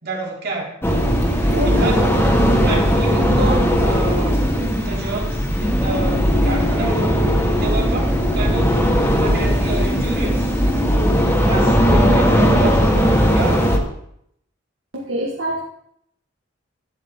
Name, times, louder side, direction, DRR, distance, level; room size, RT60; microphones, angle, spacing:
voice 1, 0.0-0.8 1.6-2.1 2.7-4.4 4.7-7.2 7.5-8.8 9.2-10.5 11.5-13.7, right 2 dB, 55° right, -2 dB, 3.0 m, -29 dB
sound 1, 0.8-13.8, equal, 10° left, 1.4 m, -17 dB
voice 2, 1.5-2.1 2.4-2.7 11.6-12.3 14.9-15.6, right 1 dB, 85° right, -3 dB, 1.7 m, -26 dB
12.0 x 9.4 x 3.7 m, 0.73 s
head